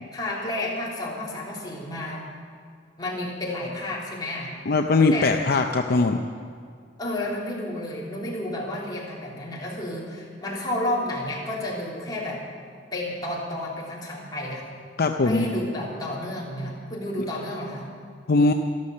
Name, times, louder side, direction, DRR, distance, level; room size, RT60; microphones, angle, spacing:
voice 1, 0.1-2.2 3.0-4.6 5.1-5.3 7.0-12.4 12.9-14.7 15.2-17.9, left 1 dB, 20° left, -5 dB, 3.3 m, -31 dB
voice 2, 4.7-6.2 15.0-15.4 18.3-18.5, left 3 dB, 55° left, 4 dB, 0.6 m, -20 dB
13.0 x 13.0 x 6.5 m, 2.1 s
head